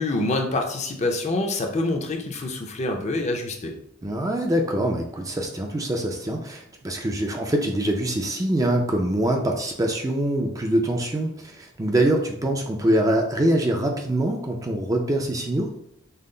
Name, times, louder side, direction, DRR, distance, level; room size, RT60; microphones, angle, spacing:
voice 1, 0.0-3.7, left 2 dB, 35° left, 3 dB, 0.6 m, -26 dB
voice 2, 4.0-15.7, right 1 dB, 15° right, 2 dB, 0.4 m, -24 dB
5.5 x 2.0 x 3.8 m, 0.74 s
head